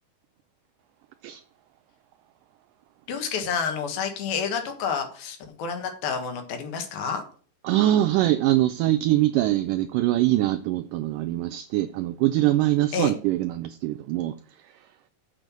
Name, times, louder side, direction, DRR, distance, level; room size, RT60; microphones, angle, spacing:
voice 1, 3.1-7.2 12.9-13.1, left 6 dB, 75° left, 3.2 m, -29 dB
voice 2, 7.6-14.3, right 15 dB, 85° right, 1.9 m, -23 dB
6.9 x 6.6 x 6.1 m
omnidirectional pair, 4.3 m